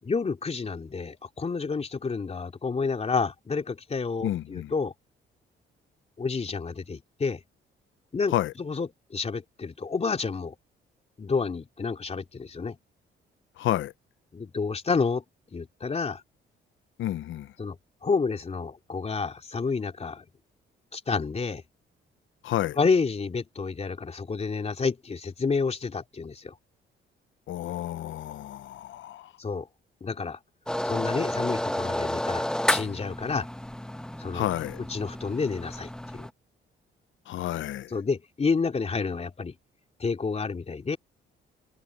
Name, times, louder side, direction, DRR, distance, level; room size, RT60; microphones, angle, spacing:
voice 1, 0.0-4.9 6.2-7.4 8.1-10.5 11.2-12.8 14.3-15.2 15.5-16.2 17.6-20.2 20.9-21.6 22.8-26.5 29.4-29.7 30.0-30.4 30.8-33.5 34.2-34.5 34.9-36.3 37.9-39.5 40.0-41.0, left 4 dB, 30° left, 3.1 m, -29 dB
voice 2, 4.2-4.7 8.3-8.5 13.6-13.9 17.0-17.5 22.4-22.8 27.5-29.3 34.3-34.8 37.3-37.9, left 13 dB, 75° left, 0.8 m, -30 dB
sound 1, 30.7-36.3, left 1 dB, 5° left, 1.3 m, -31 dB
cardioid pair, 90°, 20 cm